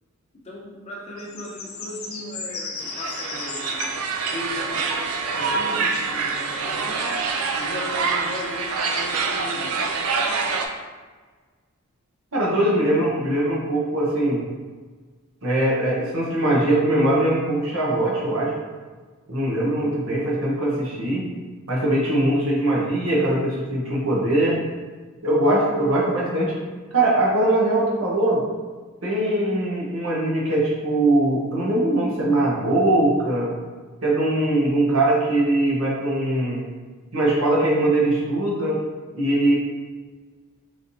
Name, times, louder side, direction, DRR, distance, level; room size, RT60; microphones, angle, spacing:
voice 1, 0.4-4.0 4.3-7.1 7.6-9.8, left 1 dB, 30° left, -5 dB, 0.9 m, -37 dB
sound 1, 1.2-7.2, left 4 dB, 70° left, 0.7 m, -37 dB
sound 2, 2.8-10.7, right 4 dB, 85° right, 0.4 m, -26 dB
voice 2, 12.3-14.4 15.4-18.5 19.3-21.2 21.7-24.6 25.2-26.5 26.9-28.4 29.0-33.5 34.0-36.6 37.1-38.8 39.1-39.5, right 1 dB, 65° right, -4 dB, 1.0 m, -21 dB
4.0 x 3.3 x 2.7 m, 1.4 s
head